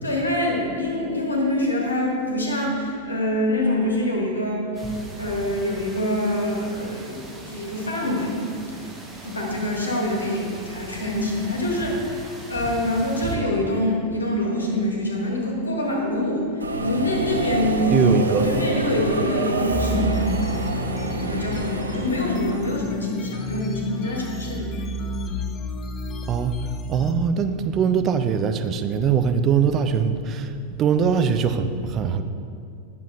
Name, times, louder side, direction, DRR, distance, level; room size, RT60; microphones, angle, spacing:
voice 1, 0.0-8.4 8.7-18.0 18.4-24.8, left 1 dB, 80° left, -1 dB, 1.6 m, -25 dB
sound 1, 4.7-13.4, right 1 dB, 10° right, 1.1 m, -39 dB
Subway metro underground, 16.6-22.8, right 2 dB, 75° right, 0.6 m, -27 dB
voice 2, 17.9-18.5 26.3-26.6 26.9-32.2, right 6 dB, 30° right, 9 dB, 0.4 m, -22 dB
sound 2, 19.7-27.1, equal, 20° left, 0.6 m, -31 dB
9.9 x 6.7 x 3.3 m, 2.4 s
figure-of-eight pair, 90°, 0 cm